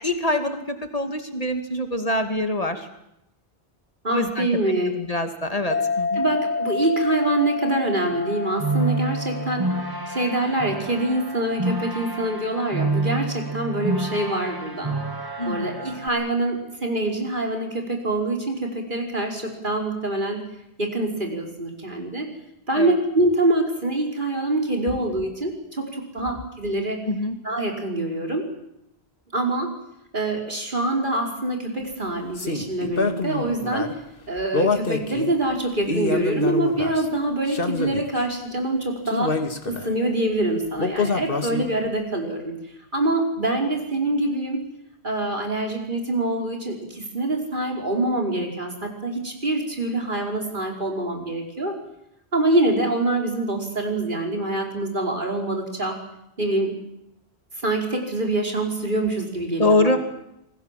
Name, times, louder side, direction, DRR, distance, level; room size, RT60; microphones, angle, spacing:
voice 1, 0.0-2.9 4.1-4.5 4.9-6.2 15.4-15.7 22.7-22.9 27.1-27.4 59.6-60.0, left 1 dB, 35° left, 7 dB, 2.6 m, -24 dB
voice 2, 4.0-4.9 6.1-9.7 10.1-14.9 15.5-20.4 20.8-22.3 22.7-27.1 27.4-28.4 29.3-29.7 30.1-34.0 34.3-39.4 39.7-42.5 42.9-44.6 45.0-51.7 52.3-56.0 56.4-56.8 57.6-59.9, right 2 dB, 50° right, 2 dB, 5.1 m, -25 dB
sound 1, 5.7-12.7, left 4 dB, 10° left, 0.8 m, -31 dB
sound 2, 8.1-16.1, right 2 dB, 20° right, 2.7 m, -29 dB
sound 3, 32.4-33.9 34.5-35.3 35.8-37.0 37.5-38.2 39.1-39.9 40.8-41.9, left 3 dB, 55° left, 2.1 m, -26 dB
27.5 x 20.5 x 7.6 m, 0.82 s
omnidirectional pair, 1.1 m